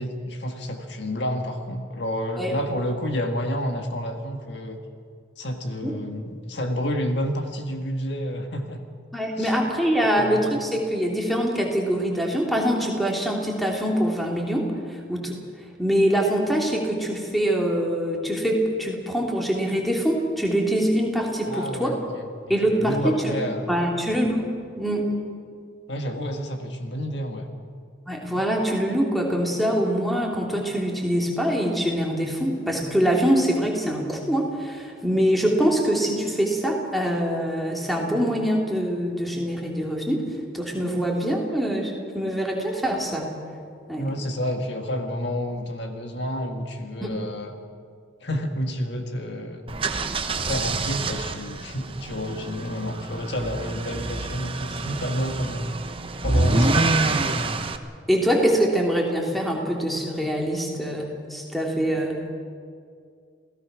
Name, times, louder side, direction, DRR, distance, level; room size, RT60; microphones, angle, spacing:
voice 1, 0.0-4.8 5.4-8.8 9.3-9.6 10.1-10.5 21.5-22.3 22.6-23.7 25.9-27.5 44.0-47.5 48.2-50.0 50.3-55.7 56.2-57.0, equal, 60° left, 4 dB, 1.8 m, -29 dB
voice 2, 9.1-15.3 15.8-21.9 22.5-23.4 23.7-24.5 24.8-25.1 28.1-43.3 43.9-44.0 47.0-47.1 50.0-50.1 56.3-56.7 58.1-62.2, equal, ahead, -1 dB, 2.8 m, -24 dB
sound 1, 49.7-57.8, right 2 dB, 25° right, 0.9 m, -27 dB
28.5 x 17.0 x 6.1 m, 2.3 s
head